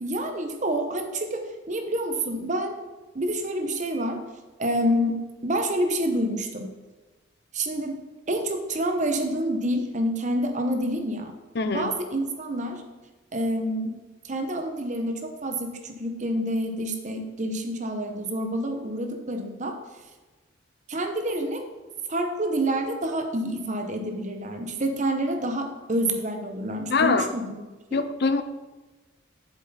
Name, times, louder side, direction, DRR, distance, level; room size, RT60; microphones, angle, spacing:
voice 1, 0.0-2.7 3.1-4.2 4.6-6.7 7.5-8.0 8.3-11.3 11.7-12.8 13.3-14.0 14.2-19.8 20.9-21.6 22.1-27.6 27.9-28.0, right 1 dB, 35° right, 5 dB, 0.8 m, -28 dB
voice 2, 11.6-11.9 26.9-27.3 27.9-28.4, left 4 dB, 50° left, 10 dB, 0.5 m, -23 dB
7.8 x 7.1 x 4.1 m, 1.2 s
head